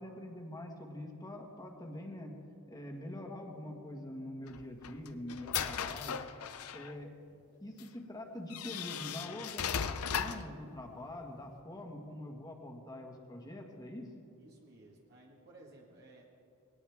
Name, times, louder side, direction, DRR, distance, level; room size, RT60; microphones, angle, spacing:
voice 1, 0.0-2.4 2.7-6.2 6.7-7.1 7.6-14.1, left 1 dB, 20° left, 2 dB, 1.8 m, -45 dB
sound 1, 4.5-6.9 7.8-7.9 8.5-10.5, left 8 dB, 75° left, 0.6 m, -37 dB
voice 2, 14.4-16.3, right 2 dB, 50° right, -2 dB, 1.9 m, -58 dB
20.5 x 18.5 x 3.6 m, 2.6 s
head